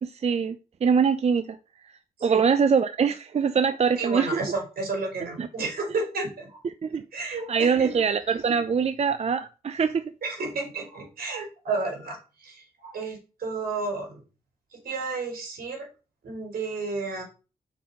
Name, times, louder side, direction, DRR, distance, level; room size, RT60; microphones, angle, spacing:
voice 1, 0.0-0.6 0.8-1.6 1.8-1.9 2.2-4.4 5.4-5.5 6.8-10.0, right 6 dB, 45° right, 0.5 m, -23 dB
voice 2, 3.9-6.6 7.1-8.0 10.2-14.2 14.7-15.9 16.2-17.2, right 3 dB, 75° right, 3.5 m, -32 dB
5.5 x 4.7 x 4.8 m
cardioid pair, 70°, 16 cm